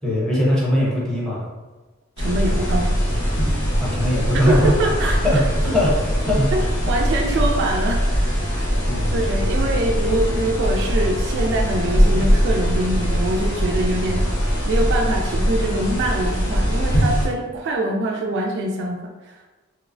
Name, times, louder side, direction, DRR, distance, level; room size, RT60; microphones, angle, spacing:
voice 1, 0.0-1.5 3.8-4.7 5.2-5.4 5.7-5.9 6.3-6.7 8.9-9.8, equal, 5° left, -7 dB, 0.7 m, -21 dB
sound 1, 2.2-17.3, equal, 85° left, 0.9 m, -21 dB
voice 2, 2.2-3.0 4.5-5.4 6.5-6.6 6.9-8.7 9.1-19.3, right 1 dB, 55° right, 2 dB, 0.3 m, -24 dB
2.9 x 2.0 x 2.5 m, 1.2 s
head